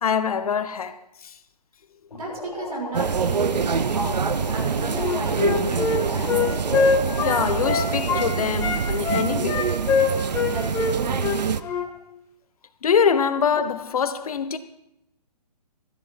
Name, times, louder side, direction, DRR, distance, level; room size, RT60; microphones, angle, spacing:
voice 1, 0.0-1.3 7.2-9.6 11.6-11.7 12.8-14.6, left 6 dB, 60° left, 1.0 m, -24 dB
sound 1, 2.1-9.5, left 3 dB, 80° left, 2.7 m, -37 dB
voice 2, 2.1-6.8 10.5-11.3, right 2 dB, 65° right, 5.7 m, -34 dB
sound 2, 2.9-11.6, right 6 dB, 80° right, 0.7 m, -25 dB
Wind instrument woodwind instrument, 4.9-8.3 8.6-11.9, left 5 dB, 15° left, 1.1 m, -23 dB
13.5 x 12.5 x 4.5 m
hypercardioid pair, 145°, 21 cm